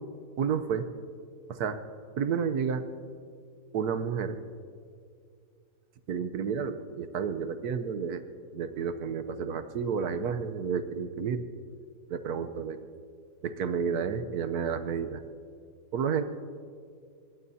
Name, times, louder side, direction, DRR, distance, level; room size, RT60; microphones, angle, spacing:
voice 1, 0.4-0.9 1.5-1.8 2.2-2.8 3.7-4.4 6.1-8.2 8.5-11.4 12.1-12.8 13.4-15.2 15.9-16.2, right 6 dB, 60° right, 10 dB, 1.2 m, -30 dB
24.5 x 21.5 x 2.8 m, 2.2 s
omnidirectional pair, 2.1 m